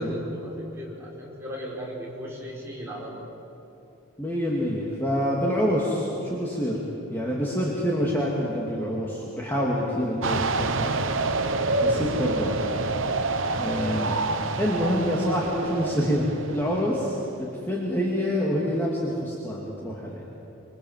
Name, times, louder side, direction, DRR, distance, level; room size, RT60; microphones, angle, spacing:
voice 1, 0.0-3.3, equal, 10° right, -4 dB, 4.9 m, -36 dB
voice 2, 4.2-6.8 7.1-10.9 11.8-12.7 13.6-14.2 14.6-20.2, equal, 10° left, -4 dB, 2.4 m, -26 dB
sound 1, 10.2-17.6, right 3 dB, 60° right, 1.0 m, -27 dB
26.0 x 24.0 x 7.5 m, 2.9 s
head